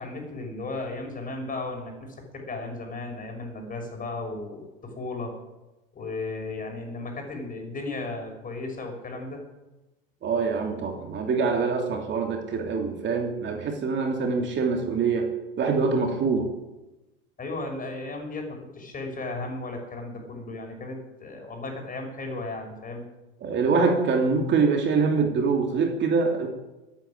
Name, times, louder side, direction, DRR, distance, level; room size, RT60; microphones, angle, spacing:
voice 1, 0.0-5.4 5.9-9.4 17.4-23.0, left 2 dB, 25° left, 3 dB, 6.2 m, -35 dB
voice 2, 10.2-15.3 15.6-16.5 23.4-26.5, right 4 dB, 35° right, 3 dB, 2.9 m, -24 dB
14.5 x 9.3 x 9.7 m, 1.0 s
hypercardioid pair, 90°, 30 cm